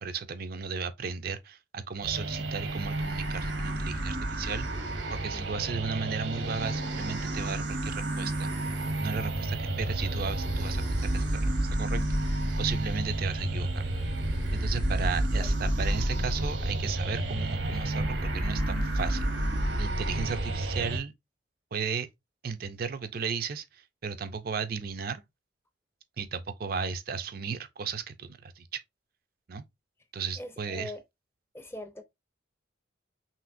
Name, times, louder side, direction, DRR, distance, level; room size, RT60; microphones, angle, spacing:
voice 1, 0.0-4.7 5.1-8.5 9.0-13.9 14.5-19.3 19.8-21.1 21.7-22.1 22.4-25.2 26.2-28.8 29.5-29.6 30.1-30.9, right 6 dB, 55° right, 0.5 m, -35 dB
sound 1, 2.0-21.0, right 1 dB, 80° right, 1.0 m, -30 dB
voice 2, 5.3-5.7 15.4-15.5 30.4-31.0 31.5-32.0, left 1 dB, 15° left, 0.6 m, -42 dB
5.8 x 2.8 x 2.5 m
head